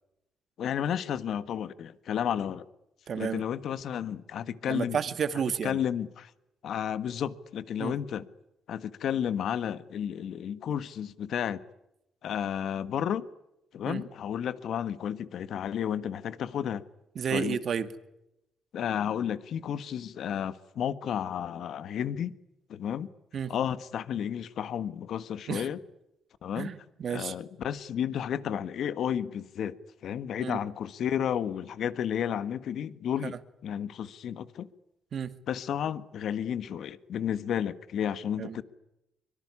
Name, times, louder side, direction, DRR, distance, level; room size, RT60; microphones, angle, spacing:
voice 1, 0.6-2.6 3.1-5.0 5.6-6.3 6.6-8.3 8.7-11.6 12.2-13.2 13.7-16.8 17.3-17.6 18.7-22.3 22.7-23.1 23.5-25.8 26.4-26.7 27.1-29.8 30.0-33.4 33.6-34.7 35.5-38.6, left 9 dB, 70° left, 14 dB, 1.5 m, -32 dB
voice 2, 3.1-3.4 4.7-5.8 7.8-8.0 13.9-14.0 17.2-17.9 23.3-23.5 25.5-25.7 26.6-27.3 30.4-30.6 33.2-33.3 35.1-35.3 38.4-38.6, right 7 dB, 55° right, 11 dB, 2.2 m, -31 dB
24.5 x 23.5 x 9.8 m, 0.87 s
cardioid pair, 90°, 0 cm